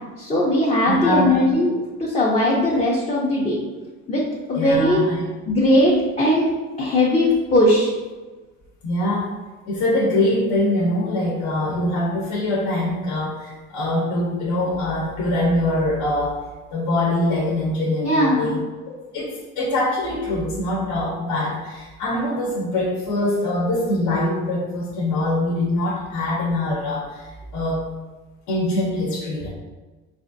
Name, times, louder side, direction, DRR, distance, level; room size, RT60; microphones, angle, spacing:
voice 1, 0.2-3.6 4.1-4.2 4.5-5.0 5.5-6.4 6.8-7.9 18.0-18.5, left 1 dB, 20° left, -5 dB, 0.5 m, -19 dB
voice 2, 0.9-1.3 4.5-5.2 8.8-9.3 9.7-16.4 16.7-18.6 18.9-19.3 19.6-27.9 28.5-29.5, left 1 dB, 65° left, -4 dB, 0.9 m, -23 dB
4.1 x 2.4 x 2.6 m, 1.3 s
cardioid pair, 110°, 32 cm